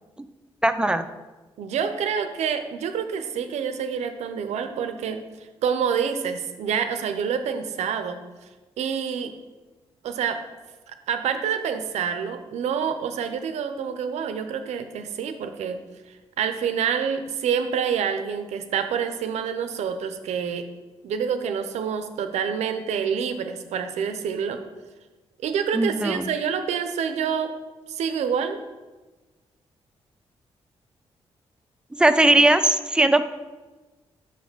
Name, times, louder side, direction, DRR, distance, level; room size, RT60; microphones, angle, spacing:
voice 1, 0.6-1.0 25.7-26.3 32.0-33.2, right 2 dB, 10° right, 9 dB, 0.5 m, -19 dB
voice 2, 1.6-5.2 5.6-8.2 8.8-9.3 10.0-10.4 10.9-15.8 16.1-20.7 21.0-24.6 25.4-27.5 27.9-28.6, right 7 dB, 80° right, 8 dB, 0.6 m, -27 dB
5.8 x 4.0 x 6.0 m, 1.2 s
supercardioid pair, 55°, 11 cm